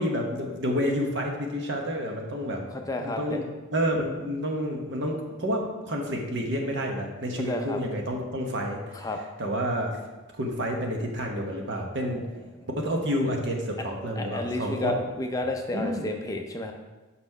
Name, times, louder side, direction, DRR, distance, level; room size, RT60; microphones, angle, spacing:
voice 1, 0.0-2.6 3.0-8.8 9.4-9.9 10.3-12.2 12.8-15.0 15.7-16.0, equal, 60° right, 1 dB, 1.1 m, -29 dB
voice 2, 2.7-3.4 7.4-7.8 8.9-9.2 12.0-12.3 12.6-12.7 13.8-13.9 14.2-16.7, left 2 dB, 15° left, 3 dB, 0.5 m, -31 dB
5.9 x 4.2 x 5.4 m, 1.2 s
head